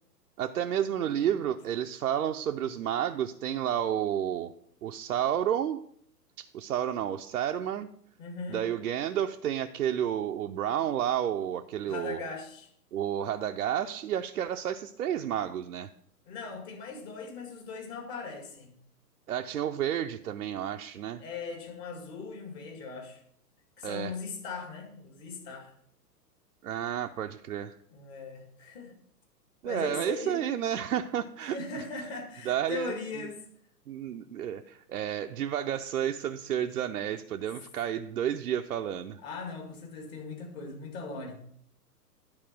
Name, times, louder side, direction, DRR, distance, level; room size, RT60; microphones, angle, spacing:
voice 1, 0.4-4.5 4.8-5.8 6.4-7.9 8.5-12.2 12.9-15.9 19.3-21.2 23.8-24.1 26.6-27.8 29.6-31.8 32.4-33.3 33.9-39.2, right 10 dB, 65° right, 4 dB, 0.6 m, -31 dB
voice 2, 8.2-8.6 11.9-12.7 16.3-18.7 21.2-23.2 23.8-25.7 27.9-29.0 29.6-30.5 31.4-33.4 39.2-41.4, left 4 dB, 40° left, 3 dB, 2.1 m, -39 dB
10.5 x 4.2 x 6.0 m, 0.67 s
figure-of-eight pair, 120°, 48 cm